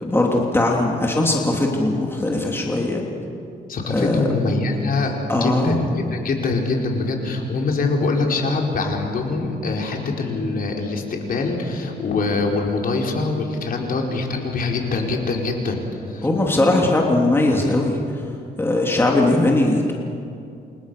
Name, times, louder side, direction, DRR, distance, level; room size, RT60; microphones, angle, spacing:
voice 1, 0.0-3.0 3.9-4.3 5.3-5.8 16.2-18.0 18.6-19.9, left 2 dB, 15° left, -1 dB, 3.0 m, -19 dB
voice 2, 3.7-15.8 16.1-16.3, left 3 dB, 55° left, 1 dB, 4.6 m, -24 dB
29.5 x 25.5 x 6.9 m, 2.5 s
cardioid pair, 120°, 18 cm